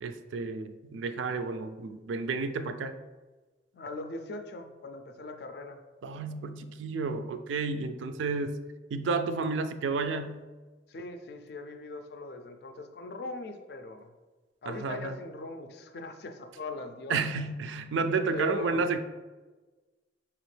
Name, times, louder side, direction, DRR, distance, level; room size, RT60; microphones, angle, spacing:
voice 1, 0.0-2.9 6.0-8.6 8.9-10.4 14.7-15.2 17.1-19.0, right 4 dB, 90° right, 9 dB, 0.4 m, -31 dB
voice 2, 3.7-5.8 10.9-14.1 14.6-17.2 18.3-18.8, left 2 dB, 60° left, 6 dB, 0.4 m, -40 dB
4.9 x 3.0 x 3.2 m, 1.2 s
head